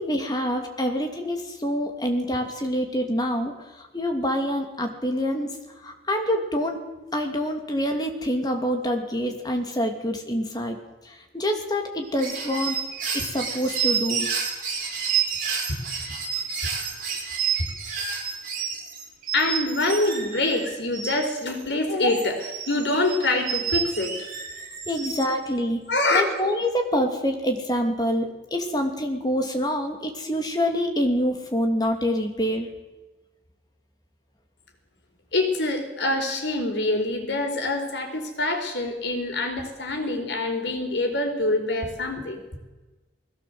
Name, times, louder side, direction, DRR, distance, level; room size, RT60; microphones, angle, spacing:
voice 1, 0.0-5.6 5.8-6.8 7.1-10.8 11.0-12.8 13.1-14.3 24.9-25.8 26.1-32.7, equal, 20° left, 4 dB, 2.9 m, -26 dB
sound 1, 12.0-21.6 22.1-25.2, right 7 dB, 50° right, 7.2 m, -29 dB
voice 2, 19.3-24.1 25.9-26.2 35.3-42.4, left 2 dB, 80° left, 4 dB, 4.2 m, -25 dB
20.5 x 17.0 x 8.0 m, 1.2 s
head